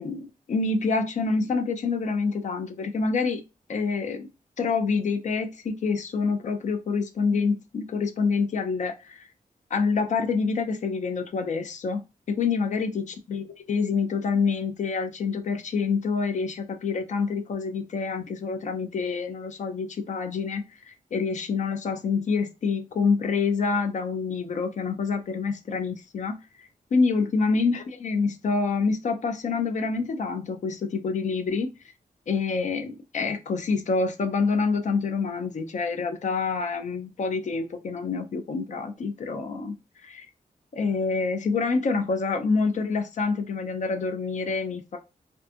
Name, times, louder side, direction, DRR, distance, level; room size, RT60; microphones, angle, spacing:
voice 1, 0.0-3.4 3.7-4.3 4.6-9.3 9.7-12.0 12.3-31.7 32.3-39.7 40.0-40.3 40.7-45.0, left 4 dB, 55° left, 0.4 m, -27 dB
2.5 x 2.4 x 2.5 m
wide cardioid pair, 125°, 15 cm